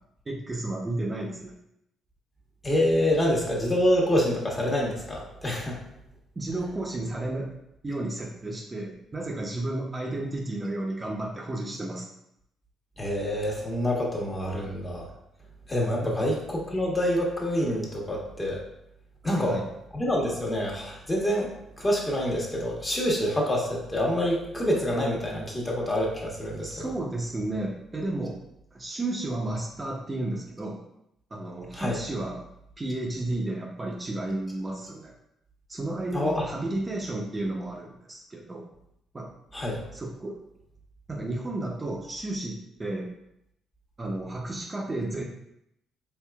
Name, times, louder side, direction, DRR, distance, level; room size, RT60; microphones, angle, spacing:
voice 1, 0.3-1.5 6.4-7.5 7.8-12.1 16.0-16.2 19.2-19.7 26.6-28.4 28.7-30.8 31.3-32.4 32.8-35.1 35.7-38.7 39.1-39.3 39.9-40.4 41.1-43.1 44.0-45.2, right 2 dB, 30° right, -1 dB, 0.7 m, -32 dB
voice 2, 2.6-5.8 13.0-15.1 15.7-18.6 19.2-19.6 19.9-21.5 21.8-26.9 31.7-32.0 36.1-36.4 39.5-39.8, left 1 dB, 25° left, -3 dB, 1.3 m, -26 dB
4.5 x 3.1 x 2.3 m, 0.79 s
supercardioid pair, 60°, 0 cm